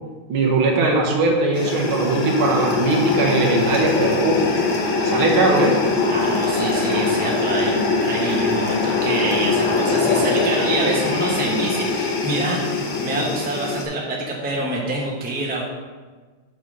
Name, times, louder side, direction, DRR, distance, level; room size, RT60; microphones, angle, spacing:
voice 1, 0.3-4.4 5.0-5.8, right 3 dB, 75° right, 0 dB, 2.0 m, -19 dB
sound 1, 1.5-13.8, left 3 dB, 70° left, 1.8 m, -22 dB
voice 2, 6.1-15.6, right 1 dB, 10° right, -2 dB, 0.6 m, -26 dB
7.0 x 4.0 x 6.2 m, 1.4 s
omnidirectional pair, 2.3 m